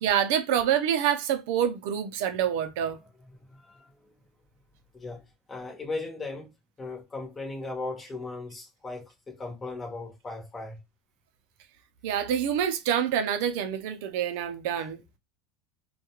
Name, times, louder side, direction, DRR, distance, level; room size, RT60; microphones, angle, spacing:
voice 1, 0.0-3.0 12.0-15.0, right 9 dB, 75° right, 0.5 m, -26 dB
voice 2, 3.5-3.9 4.9-5.2 5.5-6.5 6.8-10.8, left 3 dB, 20° left, 1.1 m, -37 dB
2.3 x 2.2 x 2.9 m
supercardioid pair, 130°, 0 cm